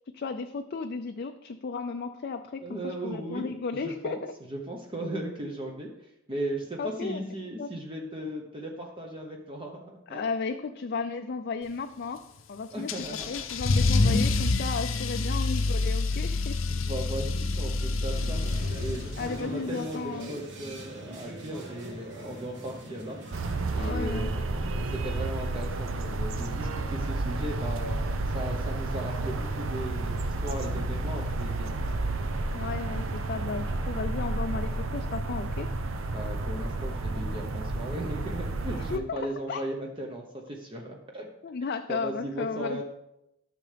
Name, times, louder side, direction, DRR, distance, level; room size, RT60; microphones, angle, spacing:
voice 1, 0.1-4.3 6.8-7.2 7.6-7.7 10.1-12.2 12.5-12.9 13.3-16.6 19.2-20.3 23.7-24.3 32.5-35.7 38.7-39.7 41.4-42.8, left 4 dB, 50° left, 6 dB, 0.4 m, -34 dB
voice 2, 2.6-5.9 6.3-10.2 12.7-13.5 14.0-14.2 16.7-23.4 23.7-30.1 30.4-31.7 36.1-41.3 41.9-42.8, right 1 dB, 25° right, 0 dB, 0.9 m, -37 dB
Car / Engine starting / Accelerating revving vroom, 12.9-19.4, left 3 dB, 85° left, 0.7 m, -27 dB
sound 1, 18.1-23.5, right 1 dB, 65° right, 1.5 m, -42 dB
sound 2, 23.3-39.0, right 2 dB, 80° right, 0.7 m, -31 dB
12.5 x 6.6 x 3.4 m, 0.86 s
head